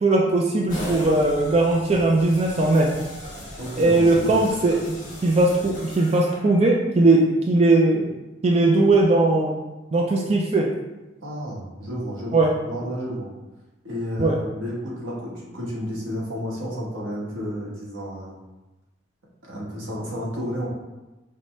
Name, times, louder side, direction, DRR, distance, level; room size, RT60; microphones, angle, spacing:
voice 1, 0.0-2.9 3.8-5.0 5.2-7.2 7.5-8.2 8.4-9.5 9.9-10.7 12.3-12.5 14.2-14.3, right 2 dB, 30° right, -1 dB, 0.3 m, -19 dB
sound 1, 0.7-6.7, equal, 20° left, 1.3 m, -38 dB
voice 2, 3.6-4.4 11.2-13.3 13.8-18.4 19.5-20.7, equal, 85° right, -5 dB, 1.1 m, -31 dB
5.2 x 2.1 x 3.1 m, 1.1 s
head